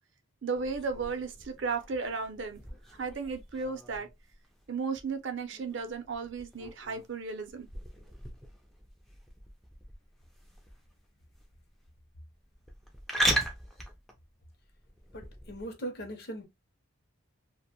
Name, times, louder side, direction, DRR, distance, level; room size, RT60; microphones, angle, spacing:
voice 1, 0.4-2.6 2.9-4.1 4.7-7.7, right 4 dB, 55° right, 0.5 m, -34 dB
sound 1, 0.5-15.6, right 1 dB, ahead, 0.3 m, -39 dB
voice 2, 15.1-16.5, right 1 dB, 50° left, 0.6 m, -39 dB
2.4 x 2.1 x 2.7 m
head